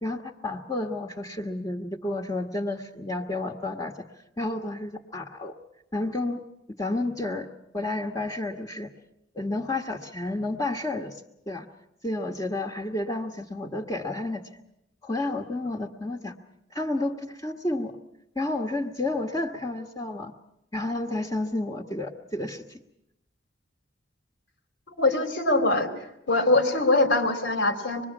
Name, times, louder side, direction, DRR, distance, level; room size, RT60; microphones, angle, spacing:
voice 1, 0.0-4.0 4.4-5.5 5.9-6.4 6.8-7.5 7.7-8.9 9.3-11.2 11.5-11.7 12.0-14.6 15.0-16.4 16.7-17.9 18.3-20.3 20.7-22.8, left 2 dB, 20° left, 0 dB, 1.5 m, -31 dB
voice 2, 25.0-25.9 26.3-28.1, left 2 dB, 80° left, 5 dB, 3.0 m, -22 dB
25.5 x 21.5 x 7.3 m, 0.83 s
head